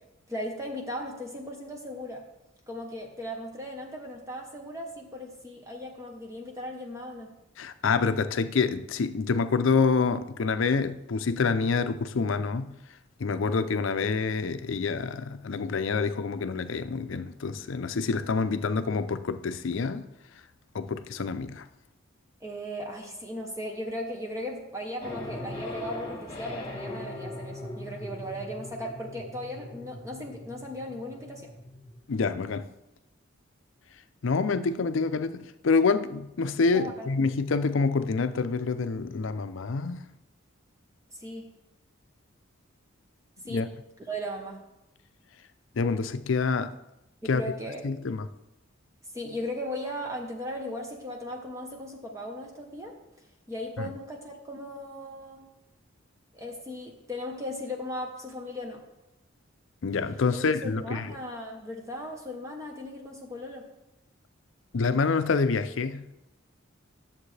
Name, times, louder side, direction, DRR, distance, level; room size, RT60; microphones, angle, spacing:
voice 1, 0.3-2.3 2.7-7.3 22.4-31.5 36.7-37.1 41.2-41.5 43.5-43.8 44.1-44.7 47.2-47.8 49.1-53.0 53.5-55.4 56.3-58.8 60.3-63.7, equal, 15° right, 1.0 m, -37 dB
voice 2, 7.6-12.7 13.2-20.1 20.7-21.6 32.1-32.7 34.2-40.0 43.5-43.7 45.8-46.7 47.3-47.4 47.8-48.3 59.8-61.1 64.7-66.0, left 4 dB, 70° left, 0.5 m, -27 dB
sound 1, 25.0-32.0, left 1 dB, 25° left, 2.0 m, -40 dB
11.0 x 7.2 x 3.3 m
head